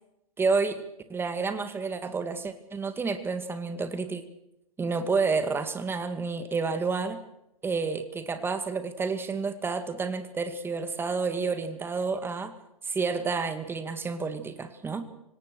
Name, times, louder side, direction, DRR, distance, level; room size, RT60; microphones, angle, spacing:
voice 1, 0.4-0.8 1.1-4.2 4.8-7.2 7.6-12.5 12.8-15.1, right 4 dB, 10° right, 10 dB, 2.2 m, -29 dB
26.0 x 19.0 x 6.5 m, 0.82 s
hypercardioid pair, 115°, 18 cm